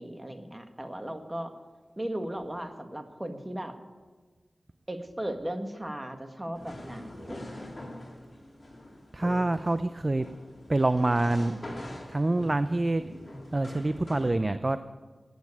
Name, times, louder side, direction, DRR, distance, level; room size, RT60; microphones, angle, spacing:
voice 1, 0.0-1.5 2.0-3.7 4.9-7.7, right 1 dB, 20° right, 6 dB, 1.7 m, -37 dB
sound 1, 6.5-14.4, left 1 dB, 40° left, 3.3 m, -43 dB
voice 2, 9.1-10.3 10.7-11.6 12.1-13.0 13.5-14.8, right 2 dB, 35° right, 12 dB, 0.5 m, -26 dB
11.5 x 9.5 x 9.7 m, 1.3 s
wide cardioid pair, 55°, 0 cm